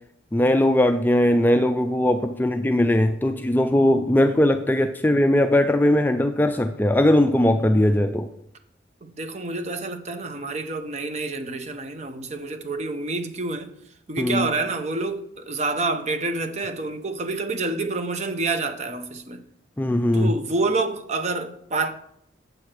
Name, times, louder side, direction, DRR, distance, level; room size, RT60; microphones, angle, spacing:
voice 1, 0.3-8.3 14.2-14.5 19.8-20.3, left 1 dB, 10° left, 0.3 m, -19 dB
voice 2, 9.0-13.7 14.1-19.4 20.1-21.9, right 3 dB, 35° right, 0.7 m, -28 dB
7.7 x 4.8 x 6.0 m
head